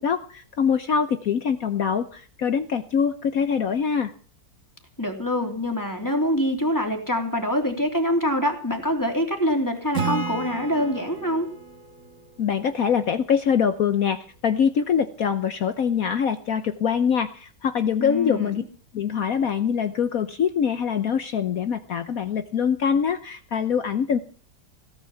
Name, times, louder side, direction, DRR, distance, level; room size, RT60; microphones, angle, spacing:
voice 1, 0.0-4.1 12.4-18.6 18.9-24.2, left 7 dB, 55° left, 9 dB, 1.2 m, -24 dB
voice 2, 5.0-11.5 18.0-18.5, equal, 10° left, 3 dB, 3.1 m, -25 dB
Acoustic guitar / Strum, 9.9-13.4, right 4 dB, 45° right, 2.1 m, -33 dB
17.5 x 9.7 x 7.2 m, 0.41 s
omnidirectional pair, 2.0 m